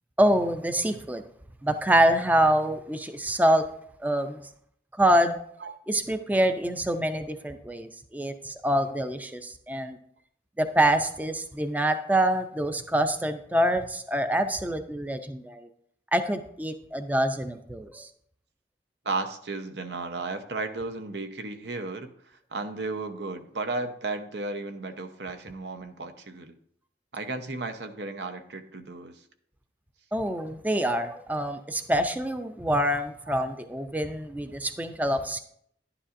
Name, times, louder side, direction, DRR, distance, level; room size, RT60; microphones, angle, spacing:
voice 1, 0.2-1.2 1.6-3.6 4.0-4.4 5.0-5.4 5.9-10.0 10.6-15.7 16.1-18.1 30.1-35.4, right 1 dB, 10° right, 8 dB, 0.4 m, -25 dB
voice 2, 19.0-22.1 22.5-26.5 27.1-29.2 33.3-33.5, right 3 dB, 80° right, 8 dB, 0.8 m, -34 dB
11.0 x 9.9 x 2.6 m, 0.67 s
head